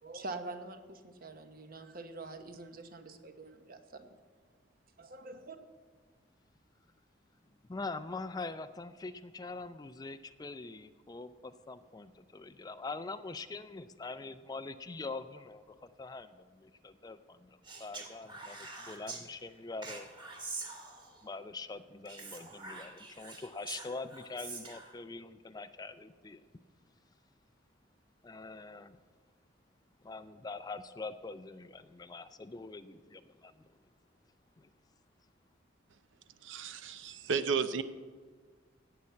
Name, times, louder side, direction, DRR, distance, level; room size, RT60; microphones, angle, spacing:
voice 1, 0.0-4.1 5.0-5.6, right 2 dB, 50° right, 8 dB, 1.0 m, -45 dB
voice 2, 7.7-20.1 21.2-26.4 28.2-29.0 30.0-33.7 34.6-34.7, left 3 dB, 20° left, 12 dB, 0.4 m, -44 dB
Speech, 17.6-19.2 19.8-21.2 22.0-24.9, right 3 dB, 25° right, 1.9 m, -45 dB
voice 3, 36.4-37.8, right 5 dB, 75° right, 12 dB, 0.6 m, -33 dB
16.0 x 5.7 x 8.4 m, 1.5 s
head